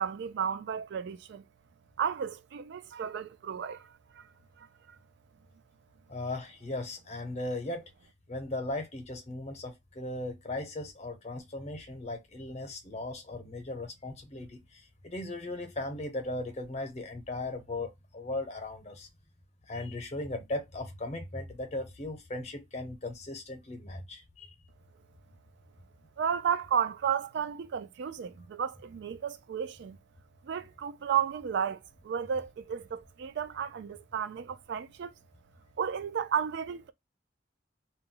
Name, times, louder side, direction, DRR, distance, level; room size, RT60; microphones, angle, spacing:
voice 1, 0.0-1.4 2.0-3.9 4.1-4.2 4.6-4.7 26.2-30.0 30.4-35.1 35.8-36.9, right 8 dB, 65° right, 0.3 m, -33 dB
voice 2, 6.1-7.9 8.3-19.1 19.7-24.6, left 2 dB, 35° left, 0.7 m, -37 dB
2.2 x 2.0 x 3.7 m
head